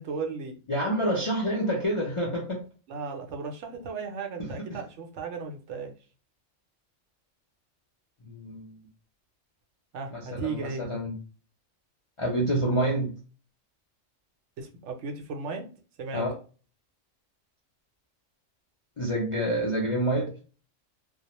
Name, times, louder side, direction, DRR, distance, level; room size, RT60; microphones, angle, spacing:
voice 1, 0.0-0.5 2.9-5.9 9.9-10.9 14.6-15.7 16.0-16.3, right 4 dB, 70° right, 3 dB, 0.9 m, -35 dB
voice 2, 0.7-2.6 4.4-4.5 8.3-8.7 10.1-11.2 12.2-13.1 16.1-16.3 19.0-20.3, right 1 dB, 55° left, -2 dB, 0.3 m, -27 dB
2.3 x 2.1 x 2.8 m, 0.36 s
omnidirectional pair, 1.3 m